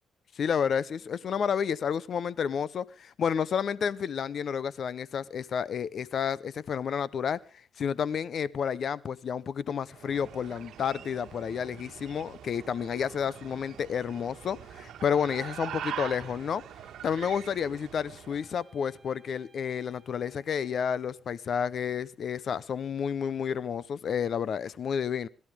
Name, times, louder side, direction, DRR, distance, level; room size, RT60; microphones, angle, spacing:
voice 1, 0.4-7.4 7.8-16.6 17.0-25.3, left 7 dB, 55° left, 0.7 m, -30 dB
sound 1, 9.9-18.5, right 10 dB, 70° right, 1.5 m, -43 dB
sound 2, 17.2-21.5, right 2 dB, 40° right, 5.7 m, -64 dB
25.5 x 12.0 x 3.5 m
cardioid pair, 90°, 0 cm